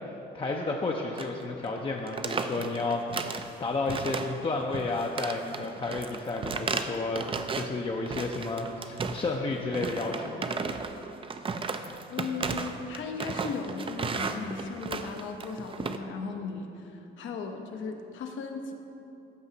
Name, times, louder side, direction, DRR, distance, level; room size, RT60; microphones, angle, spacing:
voice 1, 0.3-7.3 7.5-10.5, left 3 dB, 25° left, 0 dB, 0.5 m, -32 dB
sound 1, 1.1-1.4 1.7-1.8 2.1-3.5 3.9-4.5 4.7-7.7 8.1-9.4 9.7-16.0, right 4 dB, 25° right, 0.4 m, -34 dB
voice 2, 12.1-18.7, left 4 dB, 75° left, 4 dB, 0.8 m, -37 dB
13.0 x 4.8 x 2.8 m, 2.9 s
cardioid pair, 90°, 20 cm